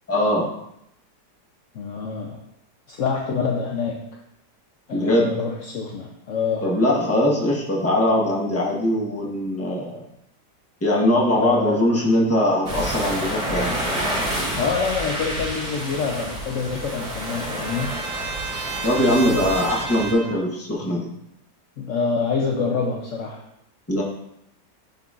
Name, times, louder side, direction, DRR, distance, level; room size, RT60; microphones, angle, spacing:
voice 1, 0.1-0.5 4.9-5.3 6.6-10.0 10.8-13.7 18.8-21.1 23.9-24.0, left 1 dB, 10° left, -3 dB, 0.9 m, -21 dB
voice 2, 1.7-2.4 2.9-4.0 4.9-6.7 11.3-11.8 14.6-17.9 21.8-23.4, left 5 dB, 75° left, 1 dB, 0.7 m, -26 dB
sound 1, 12.7-20.1, equal, 30° right, 1.9 m, -29 dB
Trumpet, 16.1-20.5, right 5 dB, 75° right, 0.7 m, -34 dB
10.5 x 3.9 x 2.4 m, 0.79 s
omnidirectional pair, 2.0 m